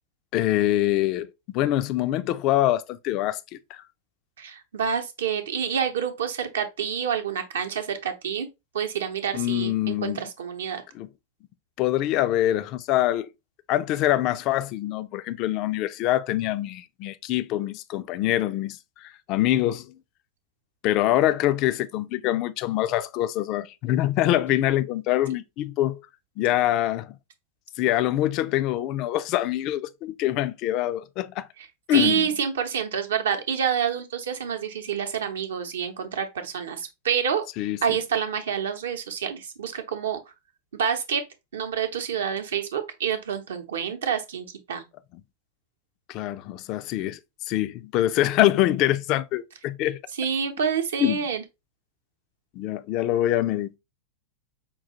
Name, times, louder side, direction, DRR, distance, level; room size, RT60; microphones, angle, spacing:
voice 1, 0.3-3.8 9.3-10.2 10.9-11.1 11.8-13.3 13.7-19.9 20.8-26.0 26.4-27.2 27.8-31.5 31.9-32.3 37.6-38.0 46.1-47.2 47.5-50.0 51.0-51.2 52.6-53.8, left 14 dB, 40° left, 0.3 m, -24 dB
voice 2, 4.4-8.5 8.7-10.8 31.9-37.4 37.8-40.2 40.7-41.2 41.5-44.8 50.2-51.4, right 7 dB, 65° right, 0.7 m, -28 dB
5.2 x 2.3 x 2.8 m
figure-of-eight pair, 90°, 0 cm